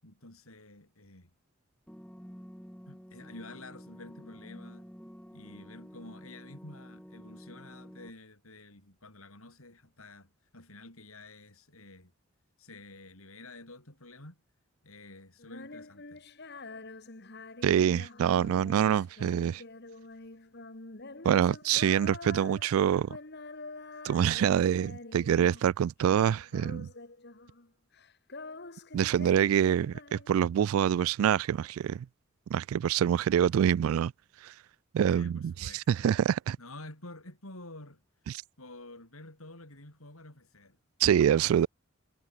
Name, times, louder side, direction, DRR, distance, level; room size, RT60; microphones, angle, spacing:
voice 1, 0.0-1.3 2.9-4.9 5.3-12.1 12.6-14.4 14.8-16.2 35.1-36.1 36.6-38.0 38.6-40.8, left 2 dB, 85° left, 7.1 m, -49 dB
sound 1, 1.9-8.1, equal, 5° left, 7.3 m, -49 dB
Female singing, 15.4-25.7 26.0-27.7 27.9-30.6, left 3 dB, 50° left, 2.0 m, -46 dB
voice 2, 17.6-19.6 21.2-23.2 24.0-26.9 28.9-32.1 32.5-34.1 34.4-34.5 34.9-36.6 38.3-38.4 41.0-41.7, right 9 dB, 80° right, 0.3 m, -26 dB
head